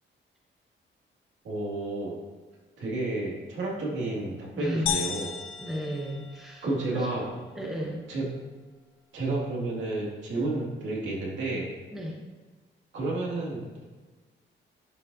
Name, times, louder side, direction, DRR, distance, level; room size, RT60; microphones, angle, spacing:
voice 1, 1.4-2.2 2.8-5.3 6.6-7.3 8.1-8.3 9.1-11.7 12.9-13.7, right 2 dB, 70° right, -4 dB, 2.2 m, -31 dB
sound 1, 4.9-6.8, left 8 dB, 90° left, 0.6 m, -33 dB
voice 2, 5.6-6.6 6.9-7.1 7.6-8.1 11.9-12.2, equal, ahead, -2 dB, 0.9 m, -34 dB
11.0 x 5.1 x 2.7 m, 1.3 s
wide cardioid pair, 165°, 20 cm